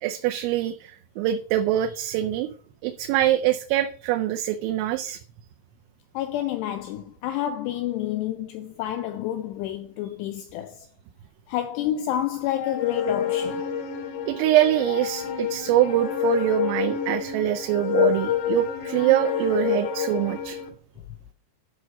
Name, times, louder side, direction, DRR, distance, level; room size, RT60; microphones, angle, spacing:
voice 1, 0.0-2.5 2.8-5.2 14.3-20.6, right 13 dB, 80° right, 2.9 m, -24 dB
voice 2, 6.1-10.9 11.5-13.6, left 12 dB, 85° left, 2.4 m, -29 dB
sound 1, 12.5-20.7, left 8 dB, 70° left, 3.1 m, -27 dB
11.0 x 4.8 x 5.9 m
omnidirectional pair, 5.5 m